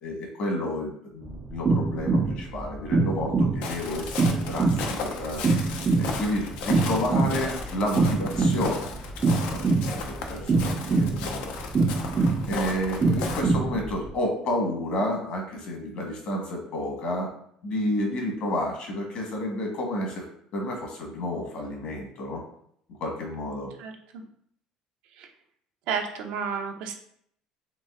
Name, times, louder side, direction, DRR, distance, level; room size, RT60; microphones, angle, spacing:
voice 1, 0.0-5.4 6.0-9.0 9.5-11.5 12.5-17.3 17.6-20.2 20.5-22.4 23.0-23.7, left 1 dB, 55° left, 0 dB, 1.5 m, -30 dB
sound 1, 1.3-14.1, right 3 dB, 25° right, 0.4 m, -25 dB
Walk footsteps, 3.6-13.4, left 5 dB, 75° left, 0.7 m, -36 dB
voice 2, 23.8-24.2 25.2-25.3 25.9-26.9, right 6 dB, 75° right, 3 dB, 0.8 m, -32 dB
3.9 x 3.1 x 3.6 m, 0.68 s
cardioid pair, 130°, 2 cm